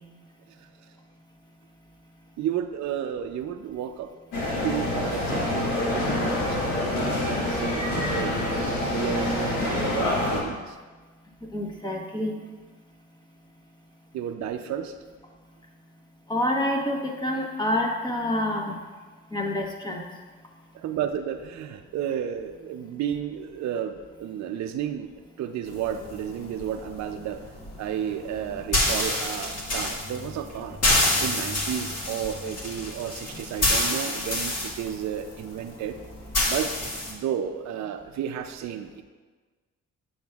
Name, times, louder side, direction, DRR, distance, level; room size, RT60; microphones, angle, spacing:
voice 1, 2.4-4.1 4.6-6.6 7.0-8.4 8.9-10.8 14.1-14.9 20.7-27.4 27.8-35.9 36.4-36.7 37.1-39.0, right 9 dB, 65° right, 6 dB, 0.5 m, -32 dB
sound 1, 4.3-10.4, left 1 dB, 90° left, 1.3 m, -26 dB
voice 2, 11.5-12.4 16.3-18.8 19.3-20.0, left 1 dB, 15° left, 0 dB, 1.2 m, -27 dB
sound 2, 25.7-37.1, left 1 dB, 55° left, 1.7 m, -28 dB
7.3 x 7.0 x 2.3 m, 1.4 s
cardioid pair, 80°, 31 cm